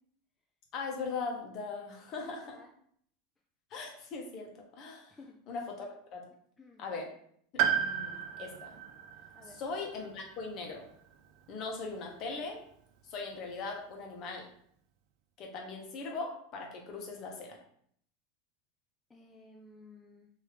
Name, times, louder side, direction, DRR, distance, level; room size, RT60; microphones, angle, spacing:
voice 1, 0.7-2.6 3.7-5.2 5.5-6.2 6.8-7.1 7.5-8.8 9.4-10.9 11.5-12.6 13.1-14.5 15.4-17.6, left 4 dB, 45° left, 1 dB, 0.9 m, -40 dB
voice 2, 2.4-2.7 5.1-5.4 6.6-6.8 9.3-9.6 19.1-20.3, left 2 dB, 15° left, 0 dB, 0.4 m, -55 dB
Piano, 7.6-11.7 13.0-13.1, right 9 dB, 60° right, 0.4 m, -34 dB
3.1 x 2.7 x 3.2 m, 0.64 s
supercardioid pair, 110°, 0 cm